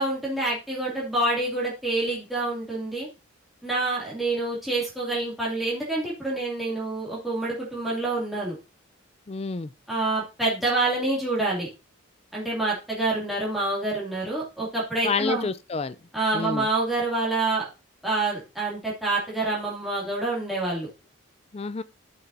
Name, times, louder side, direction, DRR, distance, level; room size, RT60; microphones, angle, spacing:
voice 1, 0.0-3.1 3.6-8.6 9.9-11.7 12.3-15.5 16.1-17.6 18.0-20.9, right 2 dB, ahead, 2.6 m, -27 dB
voice 2, 9.3-9.7 15.0-16.0 16.3-16.7 21.5-21.8, left 4 dB, 30° left, 0.4 m, -28 dB
13.0 x 6.0 x 2.7 m
head